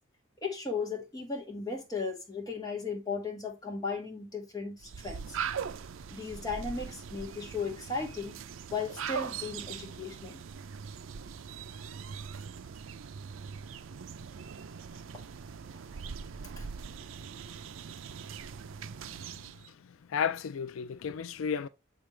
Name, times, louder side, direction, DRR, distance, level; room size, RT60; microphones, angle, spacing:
voice 1, 0.4-5.4 6.1-8.4 8.7-10.4 16.6-16.7, left 4 dB, 20° left, 2.0 m, -36 dB
sound 1, 4.8-19.7, right 6 dB, 80° right, 0.5 m, -41 dB
voice 2, 20.1-21.7, left 7 dB, 90° left, 0.4 m, -32 dB
7.1 x 5.1 x 3.3 m
head